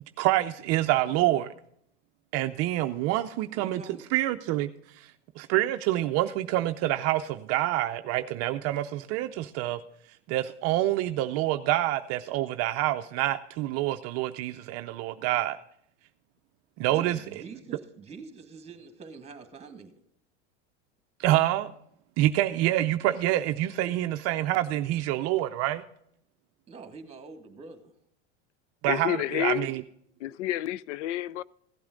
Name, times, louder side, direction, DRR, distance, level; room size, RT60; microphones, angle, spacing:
voice 1, 0.2-1.5 2.3-3.8 4.1-5.1 5.4-9.8 10.3-15.6 16.8-17.2 21.2-21.7 22.2-25.8 28.8-29.8, right 14 dB, 45° right, 0.5 m, -27 dB
voice 2, 3.6-4.1 16.9-20.0 26.7-27.9, right 4 dB, 15° right, 1.8 m, -45 dB
voice 3, 28.9-29.7 30.2-31.4, left 13 dB, 85° left, 0.5 m, -29 dB
16.0 x 8.5 x 3.8 m
supercardioid pair, 125°, 35 cm